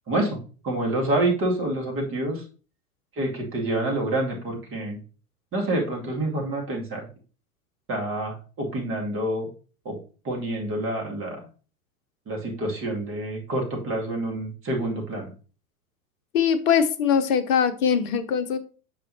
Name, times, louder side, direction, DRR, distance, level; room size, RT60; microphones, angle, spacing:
voice 1, 0.1-0.4 0.6-2.4 3.1-5.0 5.5-7.0 7.9-9.5 9.8-10.0 10.2-11.4 12.3-15.3, right 1 dB, 30° right, 2.3 m, -27 dB
voice 2, 16.3-18.6, left 7 dB, 60° left, 0.9 m, -22 dB
7.5 x 5.1 x 2.7 m
figure-of-eight pair, 90°, 45 cm